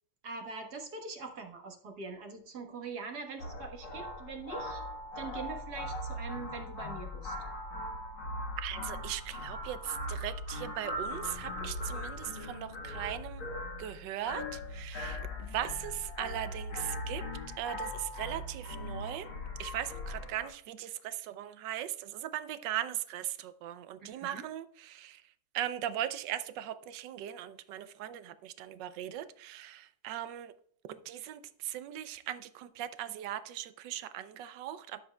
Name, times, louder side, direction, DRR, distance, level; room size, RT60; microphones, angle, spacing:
voice 1, 0.2-4.8 5.2-7.4 24.0-24.5, right 4 dB, 50° right, 1.7 m, -43 dB
sound 1, 3.4-20.5, left 1 dB, 65° left, 2.2 m, -40 dB
voice 2, 8.6-13.5 13.8-17.2 17.6-19.3 19.6-25.2 25.5-30.5 30.9-35.0, right 12 dB, 70° right, 1.1 m, -39 dB
13.0 x 7.5 x 2.3 m
omnidirectional pair, 2.4 m